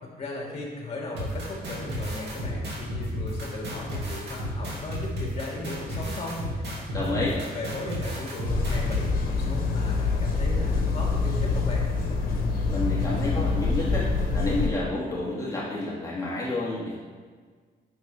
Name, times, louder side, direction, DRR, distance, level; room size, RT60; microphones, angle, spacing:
voice 1, 0.0-7.2 7.5-11.9, left 2 dB, 35° left, -2 dB, 2.8 m, -37 dB
sound 1, 1.1-9.0, left 1 dB, 85° right, 2.7 m, -32 dB
voice 2, 6.9-7.3 12.7-14.1 14.3-17.0, left 2 dB, 20° left, -7 dB, 2.3 m, -29 dB
sound 2, 8.4-14.7, left 4 dB, 60° left, 1.5 m, -26 dB
10.5 x 6.7 x 3.6 m, 1.5 s
cardioid pair, 120°, 17 cm